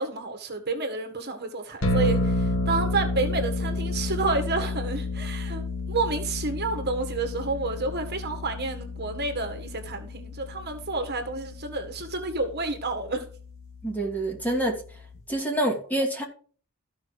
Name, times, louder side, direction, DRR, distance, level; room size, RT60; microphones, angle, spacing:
voice 1, 0.0-13.3, right 3 dB, 50° right, 1.7 m, -30 dB
sound 1, 1.8-15.2, left 2 dB, 65° left, 2.6 m, -31 dB
voice 2, 13.8-14.8 15.3-16.2, right 1 dB, 10° left, 2.5 m, -26 dB
14.0 x 5.7 x 4.9 m
head